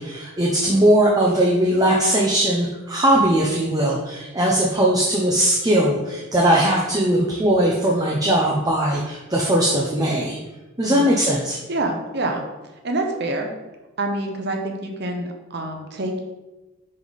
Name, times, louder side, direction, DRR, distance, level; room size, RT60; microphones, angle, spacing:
voice 1, 0.0-10.4 10.8-11.6, right 1 dB, 20° right, -3 dB, 0.8 m, -19 dB
voice 2, 11.7-12.4 12.8-13.5 14.0-16.2, right 2 dB, 50° right, 3 dB, 0.9 m, -26 dB
9.6 x 3.6 x 4.1 m, 1.1 s
head